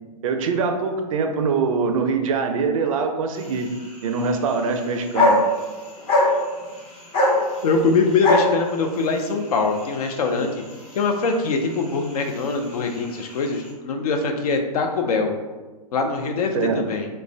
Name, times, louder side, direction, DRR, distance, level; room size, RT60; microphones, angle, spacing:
voice 1, 0.2-3.7 4.0-5.4 16.5-16.8, right 5 dB, 55° right, 5 dB, 0.4 m, -23 dB
sound 1, 3.3-13.7, left 1 dB, 25° left, 0.8 m, -26 dB
voice 2, 7.6-10.5 10.9-15.3 15.9-17.1, left 4 dB, 65° left, 4 dB, 0.5 m, -23 dB
2.4 x 2.1 x 3.2 m, 1.3 s
hypercardioid pair, 125°, 21 cm